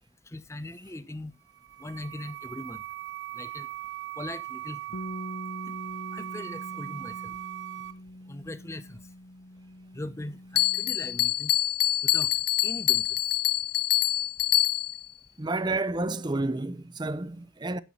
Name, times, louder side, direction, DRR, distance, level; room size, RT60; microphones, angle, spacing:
voice 1, 0.3-1.3 1.8-2.8 3.4-3.7 4.2-4.8 6.1-7.3 8.3-9.0 9.9-11.5 12.0-12.3 12.6-13.2, left 1 dB, 15° left, 0.8 m, -40 dB
sound 1, 1.4-7.9, right 14 dB, 60° right, 1.5 m, -39 dB
Bass guitar, 4.9-11.2, left 1 dB, 85° left, 1.0 m, -43 dB
Bell, 10.6-15.1, left 13 dB, 50° left, 0.6 m, -25 dB
voice 2, 15.4-17.8, right 2 dB, 20° right, 0.5 m, -30 dB
10.0 x 8.4 x 4.4 m
head